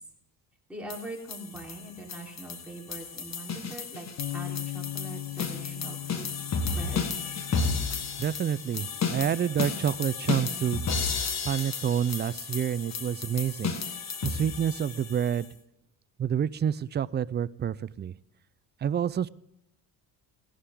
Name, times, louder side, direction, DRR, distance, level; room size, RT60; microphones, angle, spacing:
voice 1, 0.7-4.1 4.3-6.3 6.7-7.0, right 2 dB, 5° right, -2 dB, 3.6 m, -42 dB
sound 1, 0.9-15.5, left 5 dB, 45° left, 1.6 m, -33 dB
Bass guitar, 4.2-10.4, left 15 dB, 90° left, 0.9 m, -40 dB
voice 2, 8.2-10.8 11.4-13.7 14.2-15.5 16.2-18.1 18.8-19.3, right 9 dB, 30° right, 17 dB, 0.3 m, -28 dB
17.5 x 11.5 x 3.7 m, 0.81 s
cardioid pair, 115°, 39 cm